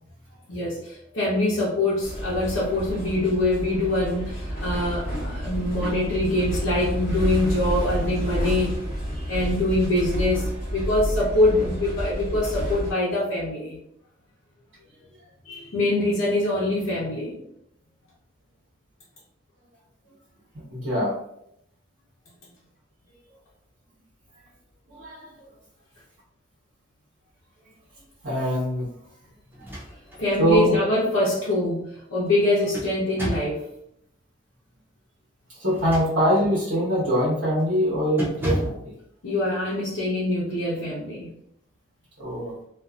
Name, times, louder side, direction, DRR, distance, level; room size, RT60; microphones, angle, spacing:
voice 1, 0.5-8.8 9.3-13.8 15.4-17.3 30.2-33.7 39.2-41.3, left 1 dB, 75° left, -8 dB, 0.8 m, -24 dB
sound 1, 2.0-12.9, equal, 40° left, 0.8 m, -30 dB
voice 2, 9.1-9.5 20.7-21.1 24.9-25.3 28.2-28.9 29.6-29.7 30.4-30.8 35.5-38.9 42.2-42.5, equal, 60° right, -10 dB, 1.2 m, -23 dB
sound 2, 29.5-30.3 30.7-30.8 32.3-33.6 35.6-36.5 37.0-37.3 37.6-37.8 38.2-38.9, right 1 dB, 10° right, 0.5 m, -32 dB
2.6 x 2.5 x 2.4 m, 0.74 s
head